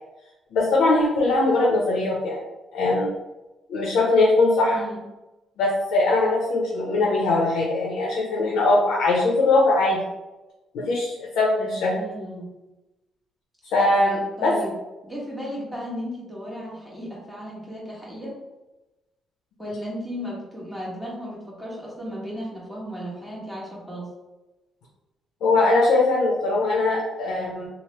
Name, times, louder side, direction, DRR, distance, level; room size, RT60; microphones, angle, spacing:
voice 1, 0.5-2.4 2.7-3.1 3.7-4.8 5.6-10.0 10.7-11.9 13.6-14.5 25.4-27.7, left 2 dB, 85° left, -3 dB, 0.6 m, -21 dB
voice 2, 4.7-5.0 11.7-12.5 14.4-14.8 15.0-18.3 19.6-24.1, equal, ahead, -6 dB, 1.1 m, -35 dB
3.0 x 2.0 x 3.1 m, 1.0 s
cardioid pair, 90°, 0 cm